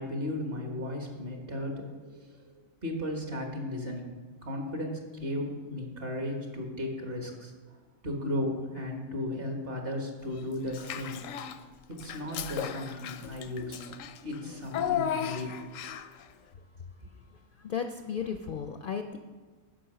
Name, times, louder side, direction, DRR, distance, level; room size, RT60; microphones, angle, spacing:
voice 1, 0.0-4.1 4.4-7.8 8.0-11.2 11.9-13.9 14.2-15.5 15.8-15.9, left 1 dB, 50° right, 2 dB, 1.6 m, -35 dB
Child speech kid speaking / Bathtub (filling or washing), 10.7-11.6 12.0-16.2, left 9 dB, 85° left, 1.0 m, -35 dB
voice 2, 17.3-19.2, left 7 dB, 60° left, 6 dB, 0.6 m, -35 dB
8.6 x 5.6 x 6.6 m, 1.4 s
omnidirectional pair, 1.3 m